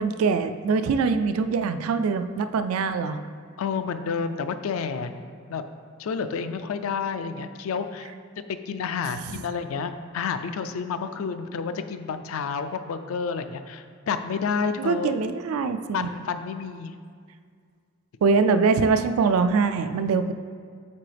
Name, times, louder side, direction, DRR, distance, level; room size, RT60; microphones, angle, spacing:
voice 1, 0.0-3.2 14.8-16.1 18.2-20.3, right 4 dB, 90° right, 10 dB, 0.3 m, -23 dB
voice 2, 3.6-5.1 5.5-5.6 6.0-15.1 15.9-16.9, left 5 dB, 80° left, 10 dB, 0.4 m, -30 dB
8.5 x 3.8 x 3.3 m, 2.1 s
head